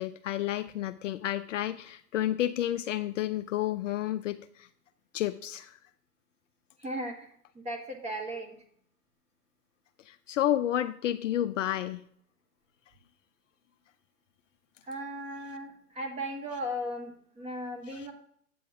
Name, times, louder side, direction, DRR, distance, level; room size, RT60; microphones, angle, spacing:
voice 1, 0.0-4.7 5.1-5.8 10.1-12.0 17.9-18.1, left 12 dB, 55° left, 10 dB, 0.5 m, -31 dB
voice 2, 6.8-7.3 7.6-8.6 14.9-18.1, equal, 15° right, 3 dB, 1.3 m, -36 dB
8.6 x 6.9 x 3.5 m, 0.64 s
hypercardioid pair, 125°, 47 cm